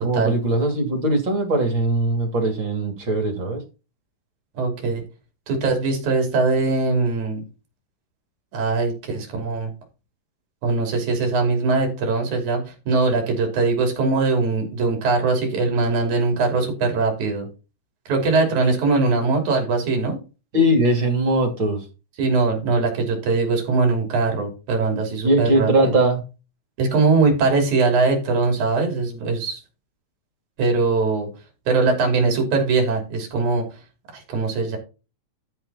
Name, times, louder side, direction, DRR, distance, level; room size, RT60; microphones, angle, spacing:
voice 1, 0.0-3.6 20.5-21.8 25.2-26.2, right 1 dB, 40° right, 5 dB, 3.2 m, -20 dB
voice 2, 4.5-5.0 5.5-7.4 8.5-9.7 10.6-17.5 18.1-20.2 22.2-25.9 26.8-29.6 30.6-31.3 31.7-33.6 34.1-34.8, right 3 dB, 75° right, 3 dB, 4.4 m, -21 dB
12.5 x 5.8 x 4.2 m, 0.30 s
omnidirectional pair, 3.4 m